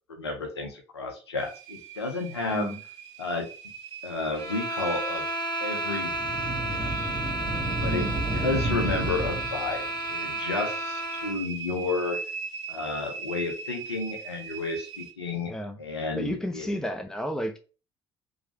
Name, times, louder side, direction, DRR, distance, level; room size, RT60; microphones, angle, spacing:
voice 1, 0.1-2.7 3.2-3.5 4.0-5.3 5.6-6.1 6.8-6.9 7.8-9.8 10.1-12.2 12.7-15.5 15.8-16.7, left 3 dB, 85° left, 0.7 m, -31 dB
sound 1, 1.4-15.1, right 5 dB, 55° right, 0.5 m, -40 dB
sound 2, 4.3-11.4, right 2 dB, 25° left, 1.3 m, -32 dB
sound 3, 6.0-9.9, right 1 dB, 25° right, 1.6 m, -31 dB
voice 2, 7.9-8.2 15.5-15.8 16.2-17.6, equal, 5° left, 0.5 m, -32 dB
3.1 x 2.2 x 2.8 m
figure-of-eight pair, 55°, 13 cm